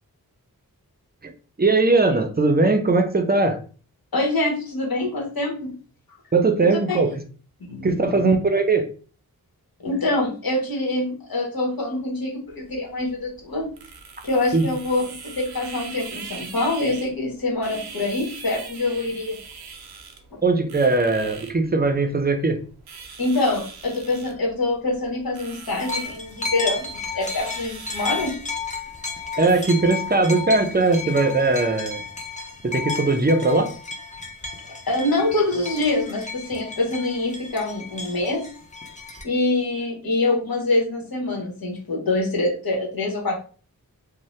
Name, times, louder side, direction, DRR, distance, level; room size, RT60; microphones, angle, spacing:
voice 1, 1.6-3.6 6.3-7.1 7.8-8.9 14.5-14.7 20.4-22.6 29.4-32.0 32.6-33.7, right 3 dB, 25° right, 6 dB, 0.5 m, -20 dB
voice 2, 4.1-5.8 6.7-7.0 7.7-8.3 9.8-13.7 14.2-19.4 23.2-28.4 34.9-38.4 39.2-43.3, left 2 dB, 70° left, -2 dB, 1.1 m, -25 dB
sound 1, 12.5-29.7, right 5 dB, 90° right, 0.6 m, -42 dB
sound 2, 25.8-39.2, left 4 dB, 20° left, 0.5 m, -33 dB
2.7 x 2.1 x 3.1 m, 0.39 s
wide cardioid pair, 50°, 37 cm